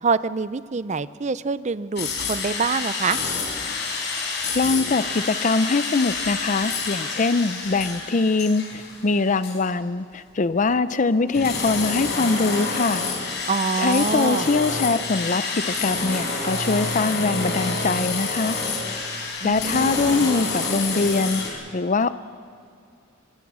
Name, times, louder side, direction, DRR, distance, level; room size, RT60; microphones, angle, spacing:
voice 1, 0.0-3.2 13.5-14.5 19.4-20.3, right 5 dB, 35° right, 16 dB, 0.6 m, -25 dB
sound 1, 2.0-9.1 9.4-9.6 10.5-21.5, left 3 dB, 60° left, 5.2 m, -28 dB
voice 2, 4.5-13.0 13.8-18.6 19.4-22.1, left 3 dB, 40° left, 14 dB, 0.6 m, -23 dB
24.0 x 23.0 x 6.2 m, 2.3 s
head